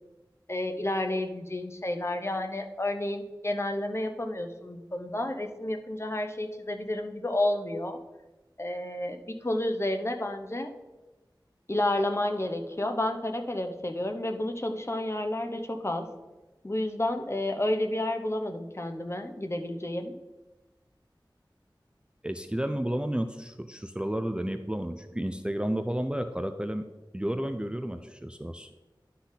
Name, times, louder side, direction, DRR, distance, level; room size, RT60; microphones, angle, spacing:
voice 1, 0.5-8.0 8.6-10.7 11.7-16.1 16.6-20.1, left 1 dB, 30° left, 5 dB, 0.9 m, -30 dB
voice 2, 22.2-26.9 27.1-28.7, right 1 dB, 10° right, 7 dB, 0.5 m, -32 dB
11.5 x 4.2 x 4.0 m, 1.1 s
wide cardioid pair, 40°, 8 cm